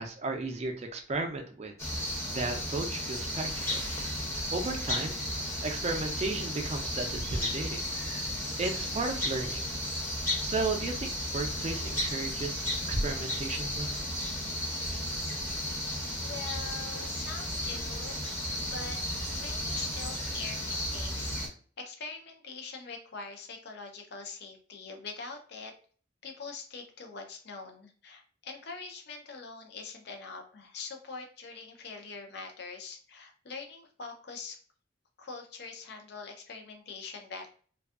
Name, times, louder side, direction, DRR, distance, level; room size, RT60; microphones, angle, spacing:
voice 1, 0.0-1.7 2.3-3.8 4.5-5.2 5.6-7.8 8.6-9.6 10.4-13.9, right 3 dB, 35° right, 4 dB, 0.4 m, -34 dB
sound 1, 1.8-21.5, left 1 dB, 15° left, 0.6 m, -34 dB
voice 2, 16.2-18.2 18.7-19.0 19.3-21.3 21.8-25.7 26.2-34.6 35.2-37.5, left 4 dB, 55° left, 4 dB, 0.5 m, -43 dB
2.5 x 2.3 x 2.3 m, 0.43 s
head